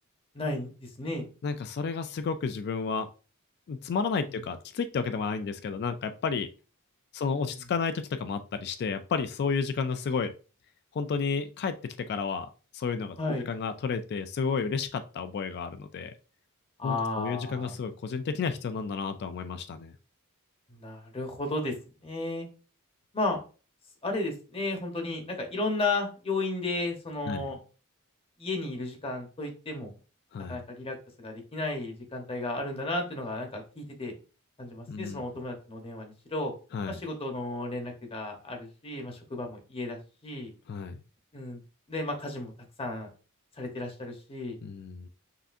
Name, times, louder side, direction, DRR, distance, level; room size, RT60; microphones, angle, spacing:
voice 1, 0.3-1.3 4.3-4.4 7.2-7.6 13.2-13.4 16.8-17.7 20.7-21.7 22.0-22.5 23.1-23.4 24.0-27.6 28.4-29.9 30.5-34.1 34.6-36.5 36.9-40.5 41.3-41.6 41.9-42.5 42.8-43.1 43.6-44.6, left 2 dB, 25° left, 3 dB, 0.9 m, -33 dB
voice 2, 1.4-3.1 3.7-6.5 7.1-10.3 10.9-12.5 12.7-16.1 16.8-19.9 27.3-27.5 30.3-30.6 34.9-35.2 36.7-37.0 40.7-41.0 44.6-45.1, left 5 dB, 50° left, 9 dB, 0.3 m, -31 dB
5.6 x 2.6 x 2.5 m, 0.35 s
head